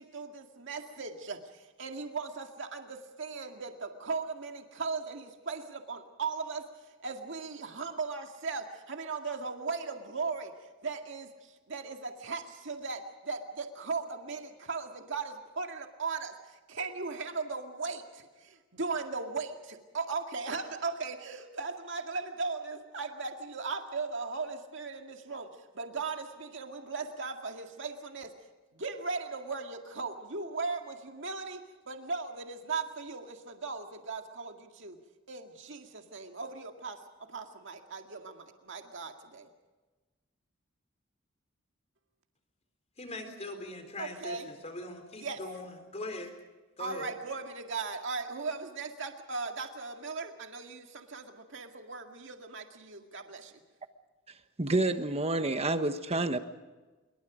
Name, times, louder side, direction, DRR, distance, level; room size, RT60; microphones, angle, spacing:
voice 1, 0.0-6.7 7.0-10.5 10.8-25.5 25.7-28.3 28.7-35.0 35.3-37.0 37.3-39.5 44.0-44.5 45.2-45.4 46.8-53.5, right 4 dB, 65° right, 4 dB, 2.1 m, -38 dB
voice 2, 43.0-46.3 46.8-47.1, left 2 dB, 35° left, 6 dB, 3.8 m, -41 dB
voice 3, 54.6-56.4, right 2 dB, 30° right, 9 dB, 1.2 m, -28 dB
26.5 x 23.5 x 5.1 m, 1.2 s
head